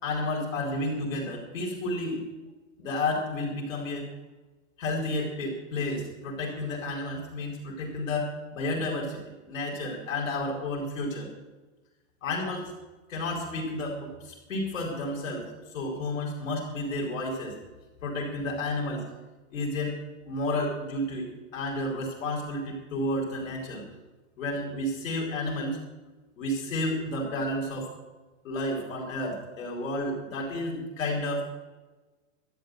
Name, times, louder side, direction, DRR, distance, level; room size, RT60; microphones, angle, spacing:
voice 1, 0.0-2.2 2.8-4.0 4.8-9.2 9.4-11.3 12.2-12.7 13.1-15.4 15.7-17.5 18.0-19.0 19.5-20.0 20.3-23.8 24.4-25.8 26.4-27.9 28.4-31.4, left 1 dB, 80° left, -2 dB, 4.6 m, -31 dB
13.0 x 11.0 x 7.9 m, 1.2 s
supercardioid pair, 165°, 40 cm